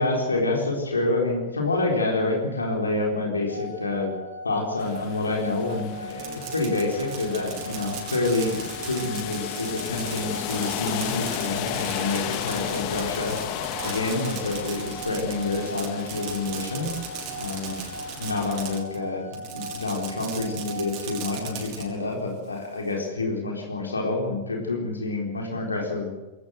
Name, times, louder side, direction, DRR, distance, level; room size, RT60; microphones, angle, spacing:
voice 1, 0.0-4.1 4.4-8.6 8.9-13.4 13.8-16.9 17.4-17.8 18.2-19.3 19.5-26.1, left 2 dB, 90° left, 1 dB, 4.2 m, -27 dB
sound 1, 3.5-21.6, right 1 dB, 90° right, 3.7 m, -39 dB
sound 2, 4.8-18.8, left 12 dB, 50° left, 1.9 m, -35 dB
Fireworks, 6.0-19.0 19.3-21.8, right 8 dB, 50° right, 5.9 m, -39 dB
21.0 x 18.0 x 8.0 m, 1.1 s
figure-of-eight pair, 95°, 0 cm